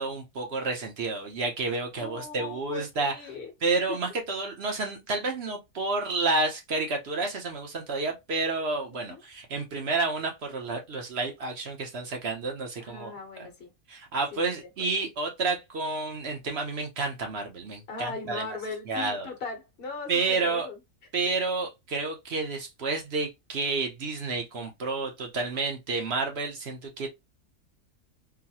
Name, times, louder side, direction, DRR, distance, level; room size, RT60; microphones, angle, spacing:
voice 1, 0.0-3.1 3.6-13.1 13.4-13.5 13.9-18.5 18.9-19.3 20.1-20.7 21.1-27.1, right 3 dB, 55° right, 0.9 m, -30 dB
voice 2, 2.0-3.5 3.9-4.0 8.9-9.2 12.8-13.7 14.3-14.7 17.9-20.8, left 4 dB, 45° left, 1.1 m, -39 dB
3.9 x 2.1 x 2.8 m
omnidirectional pair, 1.4 m